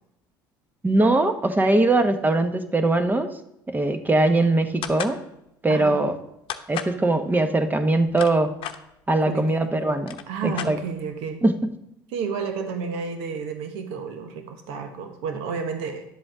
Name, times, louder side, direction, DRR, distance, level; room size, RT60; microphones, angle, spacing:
voice 1, 0.8-3.3 3.7-5.2 5.6-6.1 6.7-8.5 9.1-10.2 10.4-10.8 11.4-11.5, right 2 dB, 15° right, 8 dB, 1.2 m, -21 dB
sound 1, 4.8-5.2 6.5-7.0 7.9-8.8 9.6-9.7 9.9-11.1, left 10 dB, 55° left, 0.9 m, -33 dB
voice 2, 5.7-6.0 9.2-9.7 10.3-11.4 12.1-16.0, right 5 dB, 70° right, 6 dB, 1.4 m, -31 dB
11.0 x 7.7 x 3.8 m, 0.83 s
hypercardioid pair, 70°, 11 cm